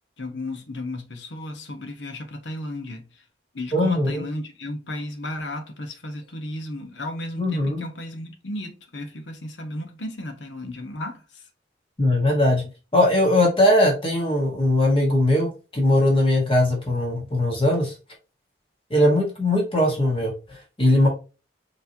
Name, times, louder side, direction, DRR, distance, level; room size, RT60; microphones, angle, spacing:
voice 1, 0.2-3.2 3.5-11.5, left 1 dB, 85° left, 1.1 m, -34 dB
voice 2, 3.7-4.2 7.4-7.8 12.0-12.6 12.9-17.9 18.9-21.1, left 1 dB, 30° left, 1.4 m, -20 dB
5.8 x 3.2 x 2.8 m
head